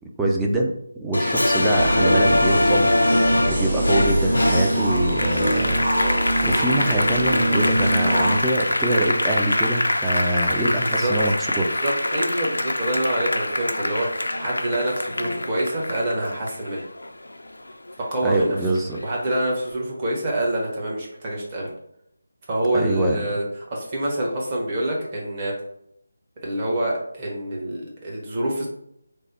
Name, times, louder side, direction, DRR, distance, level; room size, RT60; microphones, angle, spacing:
voice 1, 0.2-0.7 1.0-11.8 18.2-19.0 22.7-23.2, right 1 dB, 5° right, -1 dB, 0.4 m, -24 dB
Applause, 1.1-17.9 18.3-19.5, left 1 dB, 75° left, 0.4 m, -24 dB
sound 1, 1.8-8.4, right 1 dB, 45° right, 1.4 m, -23 dB
voice 2, 10.8-11.1 11.8-16.8 18.0-18.6 19.0-21.7 22.5-23.4 23.7-25.5 26.4-28.7, right 1 dB, 25° right, -4 dB, 0.9 m, -26 dB
3.2 x 2.0 x 4.2 m, 0.75 s
figure-of-eight pair, 160°, 0 cm